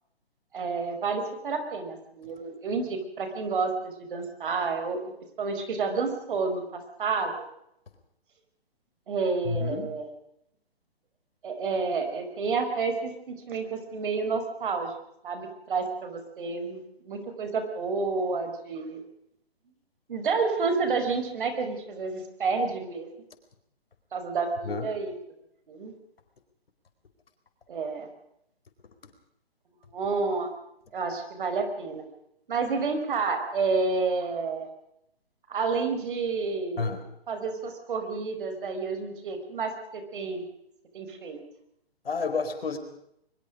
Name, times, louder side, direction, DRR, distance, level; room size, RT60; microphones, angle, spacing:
voice 1, 0.5-5.0 5.4-7.3 9.1-10.1 11.4-14.9 15.2-19.0 20.1-23.1 24.1-25.1 25.7-25.9 27.7-28.1 29.9-30.5 30.9-32.0 32.5-34.7 35.5-36.9 37.3-40.4 40.9-41.4, right 4 dB, 55° right, 6 dB, 5.2 m, -30 dB
voice 2, 9.4-9.9 24.6-24.9 36.8-37.0 42.0-42.8, left 4 dB, 65° left, 7 dB, 4.5 m, -30 dB
23.0 x 22.5 x 5.1 m, 0.76 s
hypercardioid pair, 145°, 31 cm